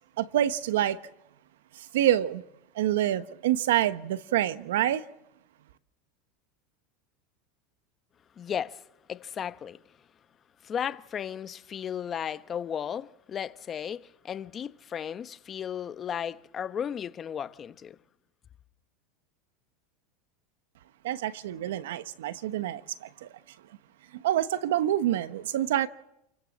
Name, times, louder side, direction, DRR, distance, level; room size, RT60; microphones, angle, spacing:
voice 1, 0.2-1.0 1.8-2.4 2.7-5.0 21.0-23.3 24.1-25.9, right 12 dB, 90° right, 1.2 m, -27 dB
voice 2, 8.4-8.8 9.1-9.8 10.6-18.0, left 8 dB, 25° left, 1.0 m, -35 dB
28.0 x 23.0 x 7.5 m
supercardioid pair, 135°, 0 cm